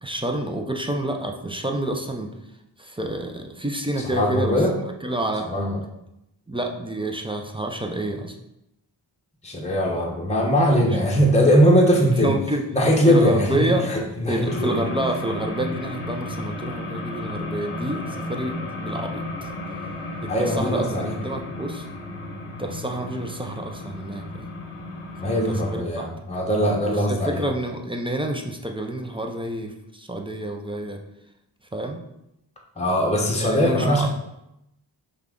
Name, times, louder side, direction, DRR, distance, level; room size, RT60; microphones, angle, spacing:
voice 1, 0.0-2.3 2.8-4.6 5.0-5.5 6.5-8.4 12.0-12.6 13.1-13.9 14.3-19.5 20.2-21.9 22.6-24.5 25.2-26.1 26.8-31.0 31.7-32.0 33.4-34.1, right 1 dB, 10° right, 2 dB, 0.5 m, -28 dB
voice 2, 4.0-4.7 5.5-5.8 9.4-12.3 12.7-14.9 20.3-21.1 25.2-27.4 32.8-34.1, equal, 15° left, -2 dB, 0.9 m, -20 dB
sound 1, 14.5-25.8, left 1 dB, 90° left, 0.8 m, -33 dB
5.5 x 2.4 x 3.7 m, 0.85 s
cardioid pair, 45°, 49 cm